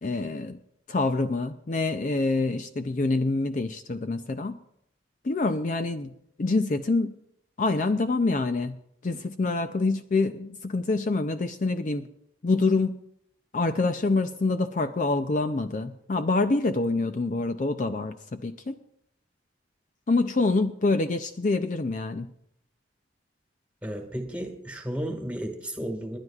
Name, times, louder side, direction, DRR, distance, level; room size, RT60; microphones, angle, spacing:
voice 1, 0.0-0.6 0.9-4.6 5.2-7.1 7.6-8.8 9.0-12.1 12.4-13.0 13.5-18.8 20.1-22.3, left 3 dB, 40° left, 8 dB, 0.5 m, -26 dB
voice 2, 23.8-26.2, right 1 dB, 5° right, 3 dB, 1.7 m, -33 dB
30.0 x 10.5 x 2.4 m, 0.76 s
head